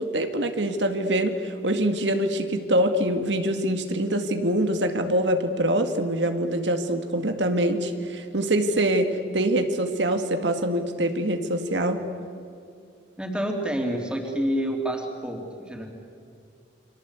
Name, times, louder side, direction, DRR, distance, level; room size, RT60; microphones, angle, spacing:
voice 1, 0.0-12.0, right 1 dB, 90° right, 6 dB, 2.0 m, -24 dB
voice 2, 13.2-15.9, right 1 dB, 5° right, 1 dB, 3.3 m, -28 dB
29.0 x 24.5 x 8.3 m, 2.4 s
head